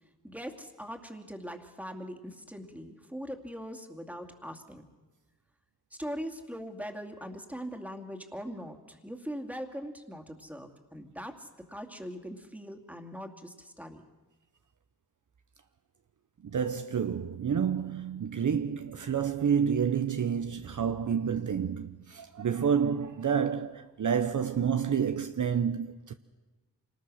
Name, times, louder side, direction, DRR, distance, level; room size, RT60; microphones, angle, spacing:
voice 1, 0.2-4.8 6.0-14.0, equal, 5° right, 2.5 m, -41 dB
voice 2, 16.4-26.1, right 7 dB, 50° right, 0.8 m, -29 dB
26.0 x 19.5 x 6.4 m
cardioid pair, 60°, 38 cm